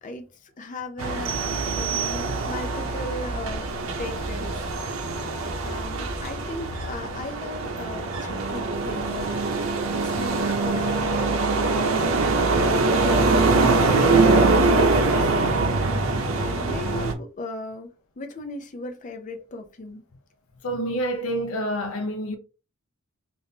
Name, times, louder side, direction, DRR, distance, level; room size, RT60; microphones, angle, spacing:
voice 1, 0.0-1.4 1.8-3.6 3.9-4.7 5.6-9.3 9.9-12.1 13.5-15.6 16.3-17.9 18.2-20.0, left 2 dB, 40° left, 0.5 m, -37 dB
sound 1, 1.0-17.1, right 3 dB, 90° right, 0.6 m, -23 dB
sound 2, 1.3-2.8, right 12 dB, 45° right, 0.5 m, -32 dB
voice 2, 20.6-22.4, right 1 dB, 90° left, 0.6 m, -27 dB
3.5 x 2.6 x 2.7 m
head